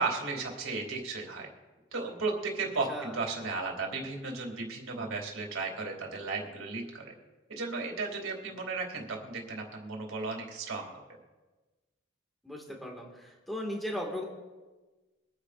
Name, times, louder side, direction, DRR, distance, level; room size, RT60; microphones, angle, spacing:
voice 1, 0.0-1.5 1.9-7.1 7.5-11.0, right 3 dB, 85° right, 1 dB, 2.5 m, -35 dB
voice 2, 12.4-14.2, left 1 dB, ahead, -1 dB, 1.7 m, -37 dB
23.5 x 10.0 x 2.5 m, 1.2 s
head